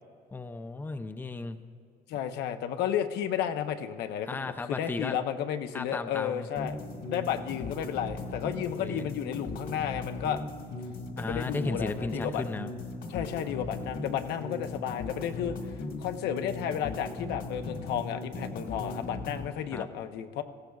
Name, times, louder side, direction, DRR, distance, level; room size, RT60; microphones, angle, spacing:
voice 1, 0.3-1.6 4.3-5.1 5.7-6.5 8.8-9.1 11.2-12.7 19.7-19.9, left 3 dB, 10° left, 9 dB, 0.5 m, -35 dB
voice 2, 2.1-6.8 7.0-10.4 11.2-12.4 13.1-15.6 16.0-20.4, left 9 dB, 80° left, 7 dB, 0.7 m, -32 dB
sound 1, 6.6-19.5, left 2 dB, 60° left, 1.7 m, -38 dB
18.0 x 14.5 x 2.3 m, 2.3 s
cardioid pair, 110°, 17 cm